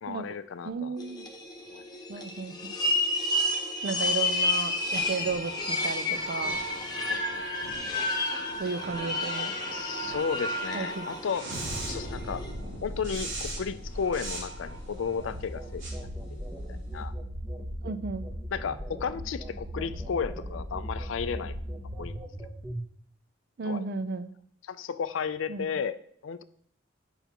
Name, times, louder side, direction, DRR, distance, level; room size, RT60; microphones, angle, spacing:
voice 1, 0.0-1.0 1.7-1.8 7.1-7.3 9.7-11.5 11.9-12.4 12.8-15.8 16.3-16.4 16.7-17.1 18.5-21.5 22.0-22.2 23.6-23.8 24.6-26.4, left 6 dB, 75° left, 13 dB, 0.4 m, -33 dB
voice 2, 0.6-1.3 2.1-2.8 3.8-6.6 8.6-9.6 10.7-11.1 17.8-18.3 23.6-24.3 25.5-25.7, right 4 dB, 55° right, 12 dB, 0.5 m, -34 dB
sound 1, 1.0-12.5, left 2 dB, 20° left, 1.1 m, -31 dB
sound 2, 4.5-16.9, right 2 dB, 85° right, 2.7 m, -39 dB
sound 3, 15.2-22.8, equal, 15° right, 0.9 m, -38 dB
9.0 x 5.7 x 3.0 m, 0.65 s
head